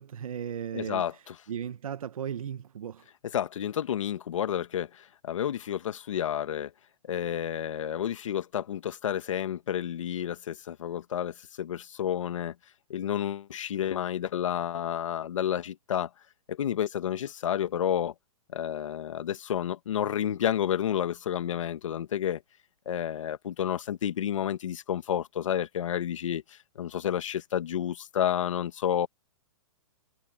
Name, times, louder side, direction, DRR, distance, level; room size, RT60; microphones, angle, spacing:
voice 1, 0.0-3.1, right 8 dB, 75° right, 1.4 m, -36 dB
voice 2, 0.7-1.1 3.3-4.9 5.3-5.8 6.1-6.7 7.1-11.3 11.6-12.5 12.9-16.1 16.6-18.1 18.5-22.4 22.9-26.4 26.8-29.1, left 10 dB, 60° left, 1.6 m, -30 dB
hypercardioid pair, 175°, 18 cm